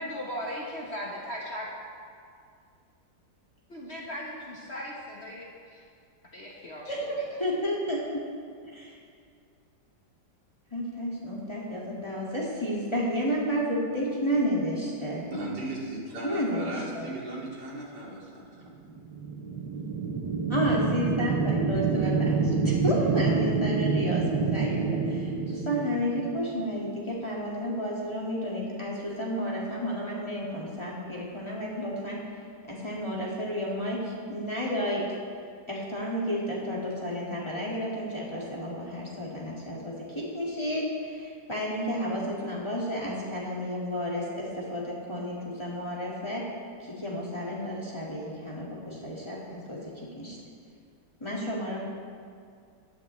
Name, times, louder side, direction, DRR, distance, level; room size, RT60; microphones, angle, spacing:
voice 1, 0.0-1.7 3.7-5.8 6.3-7.0, equal, 40° left, -3 dB, 1.3 m, -37 dB
voice 2, 6.9-8.2 8.7-8.9 10.7-15.2 16.2-17.1 20.5-32.2 32.7-35.0 35.7-46.4 46.8-50.4 51.2-51.8, equal, 15° left, -6 dB, 2.0 m, -31 dB
voice 3, 15.3-18.7, right 2 dB, 65° right, -4 dB, 2.9 m, -37 dB
sound 1, 19.0-26.7, right 4 dB, 85° right, 1.6 m, -27 dB
16.5 x 11.0 x 3.2 m, 2.3 s
omnidirectional pair, 1.9 m